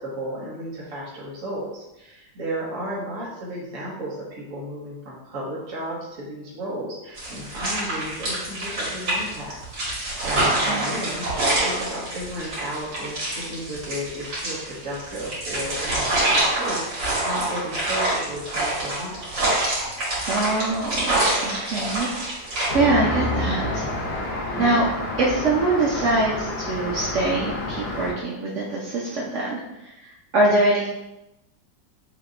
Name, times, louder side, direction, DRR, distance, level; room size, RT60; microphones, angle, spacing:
voice 1, 0.0-9.6 10.0-11.3 11.6-19.6 24.5-24.8, equal, 50° right, -7 dB, 1.4 m, -34 dB
sound 1, 7.2-22.7, right 1 dB, 70° right, 2.4 m, -26 dB
voice 2, 20.2-22.1 22.7-23.9 24.6-24.8 25.2-30.9, right 2 dB, 90° right, -4 dB, 0.6 m, -23 dB
Traffic noise roadway noise, 22.7-28.1, left 1 dB, 75° left, 0.5 m, -28 dB
6.5 x 2.8 x 2.5 m, 0.93 s
omnidirectional pair, 2.1 m